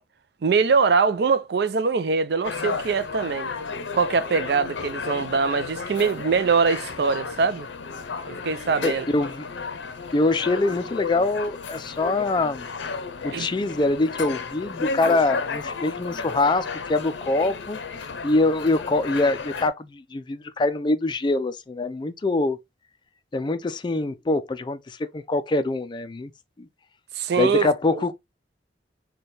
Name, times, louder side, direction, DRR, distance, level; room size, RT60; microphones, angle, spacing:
voice 1, 0.4-3.5 3.9-7.7 8.3-9.1 13.3-13.5 27.2-27.7 27.9-28.0, right 5 dB, 60° right, 0.4 m, -23 dB
sound 1, 2.4-19.7, left 4 dB, 85° left, 0.6 m, -33 dB
voice 2, 8.8-9.5 10.1-12.7 13.2-17.8 18.2-22.6 23.3-26.3 26.6-26.7 27.4-28.1, left 2 dB, 25° left, 0.3 m, -24 dB
4.3 x 2.2 x 3.2 m
head